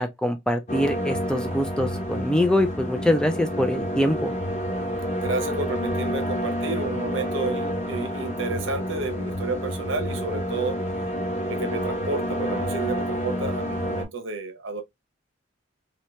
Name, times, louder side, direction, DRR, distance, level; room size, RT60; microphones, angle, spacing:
voice 1, 0.0-4.3, left 1 dB, 5° left, 0.4 m, -24 dB
sound 1, 0.7-14.0, equal, 35° left, 1.0 m, -29 dB
voice 2, 5.2-10.8 11.5-14.8, right 3 dB, 75° right, 0.9 m, -31 dB
2.9 x 2.8 x 3.1 m
head